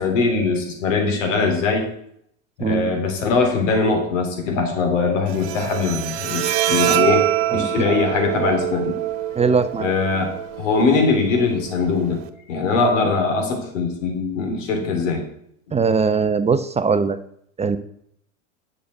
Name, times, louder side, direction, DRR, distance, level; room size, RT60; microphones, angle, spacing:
voice 1, 0.0-1.9 2.6-7.3 7.5-9.0 9.8-10.3 10.6-12.2 12.5-15.2, left 4 dB, 75° left, 3 dB, 3.6 m, -21 dB
Bowed string instrument, 5.3-12.3, right 13 dB, 65° right, 1.3 m, -25 dB
voice 2, 7.5-8.0 9.4-9.9 15.7-17.2 17.6-17.8, right 5 dB, 15° right, 11 dB, 0.7 m, -20 dB
8.7 x 6.8 x 8.0 m, 0.69 s
hypercardioid pair, 100°, 38 cm